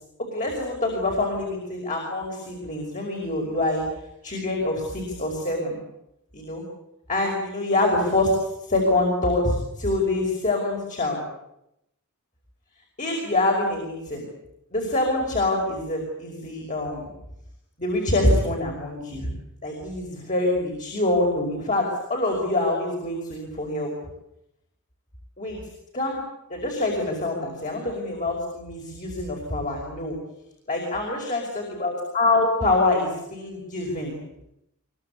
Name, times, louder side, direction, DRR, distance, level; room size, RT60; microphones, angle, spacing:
voice 1, 0.2-3.8 4.2-5.8 6.3-6.7 7.1-11.2 13.0-14.3 14.7-17.1 17.8-19.3 19.6-23.9 25.4-25.6 25.9-26.2 26.5-30.2 30.7-34.2, left 2 dB, 35° left, 1 dB, 5.6 m, -25 dB
24.5 x 23.5 x 8.5 m, 0.84 s
head